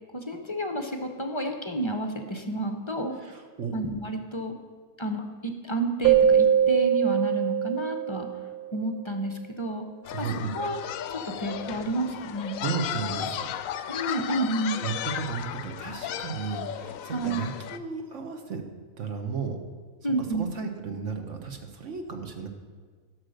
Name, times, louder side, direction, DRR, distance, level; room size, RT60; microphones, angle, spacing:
voice 1, 0.1-3.2 3.7-4.5 5.0-8.3 8.7-9.9 10.2-10.3 10.5-10.8 11.1-12.6 13.9-14.8 17.1-17.5 20.0-20.5, right 1 dB, 30° left, 5 dB, 0.6 m, -30 dB
voice 2, 3.1-3.8 10.1-10.5 12.6-13.5 14.8-18.6 19.0-19.6 20.3-22.5, right 5 dB, 60° right, 5 dB, 1.3 m, -34 dB
Keyboard (musical), 6.0-8.8, right 9 dB, 90° right, 0.5 m, -22 dB
sound 1, 10.0-17.8, left 10 dB, 70° left, 0.9 m, -35 dB
12.5 x 6.3 x 6.5 m, 1.5 s
omnidirectional pair, 1.5 m